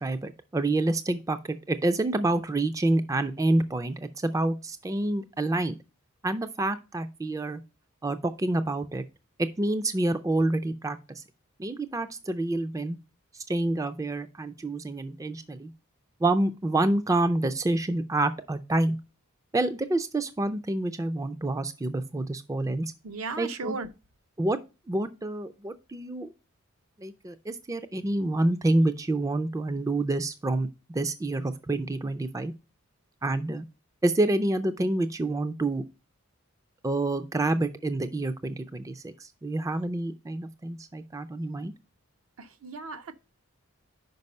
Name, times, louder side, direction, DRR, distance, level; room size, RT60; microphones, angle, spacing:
voice 1, 0.0-5.7 6.2-7.6 8.0-9.0 9.4-11.2 11.6-13.0 13.3-15.7 16.2-19.0 19.5-22.9 23.4-23.8 24.4-24.6 24.9-26.3 27.0-32.5 33.2-33.7 34.0-35.8 36.8-41.7, right 2 dB, 15° right, 0.3 m, -28 dB
voice 2, 23.0-23.9 42.4-43.1, right 4 dB, 70° right, 0.6 m, -36 dB
5.3 x 5.1 x 5.3 m
head